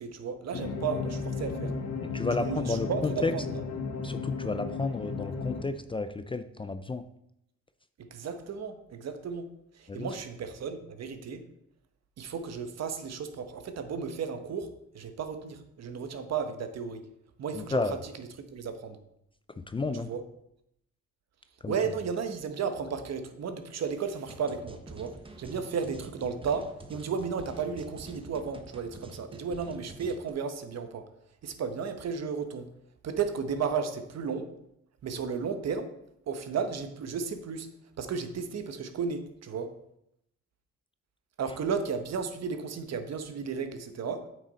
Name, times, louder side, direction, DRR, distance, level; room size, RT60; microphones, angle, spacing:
voice 1, 0.0-1.7 2.4-3.4 8.0-11.4 12.2-17.0 17.4-19.0 20.1-20.2 21.7-31.1 31.4-32.7 33.0-34.5 35.0-35.9 36.3-37.7 38.0-39.7 41.4-44.3, right 6 dB, 60° right, 8 dB, 1.1 m, -34 dB
sound 1, 0.5-5.6, left 4 dB, 60° left, 1.6 m, -34 dB
voice 2, 2.0-3.3 4.0-7.0 9.9-10.1 17.5-18.0 19.6-20.1 21.6-21.7, left 3 dB, 15° left, 10 dB, 0.4 m, -32 dB
sound 2, 24.3-30.3, right 2 dB, 15° right, 1.0 m, -47 dB
8.4 x 6.4 x 4.1 m, 0.79 s
cardioid pair, 90°, 30 cm